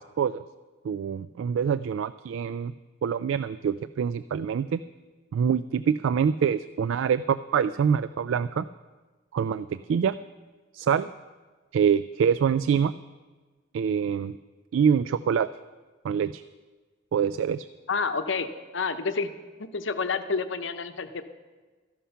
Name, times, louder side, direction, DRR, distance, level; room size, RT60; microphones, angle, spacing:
voice 1, 0.8-2.7 3.0-4.8 5.3-8.7 9.3-10.1 10.7-11.1 11.7-12.9 13.7-14.3 14.7-15.5 16.0-16.4 17.1-17.7, right 7 dB, 75° right, 15 dB, 0.3 m, -25 dB
voice 2, 17.9-19.3 19.6-21.3, left 4 dB, 70° left, 9 dB, 0.8 m, -29 dB
14.0 x 11.5 x 5.6 m, 1.3 s
head